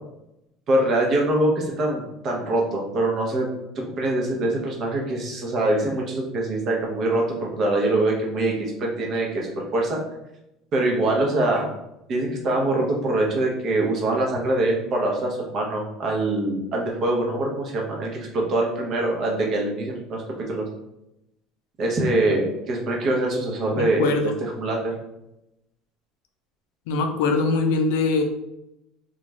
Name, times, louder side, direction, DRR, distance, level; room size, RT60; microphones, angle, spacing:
voice 1, 0.7-3.5 3.8-10.0 10.7-11.7 12.1-20.2 20.5-20.6 21.8-24.1 24.5-24.9, right 2 dB, 45° right, -1 dB, 0.8 m, -24 dB
voice 2, 23.7-24.3 26.9-28.2, left 3 dB, 85° left, 4 dB, 0.4 m, -22 dB
2.4 x 2.3 x 3.1 m, 0.88 s
supercardioid pair, 105°, 0 cm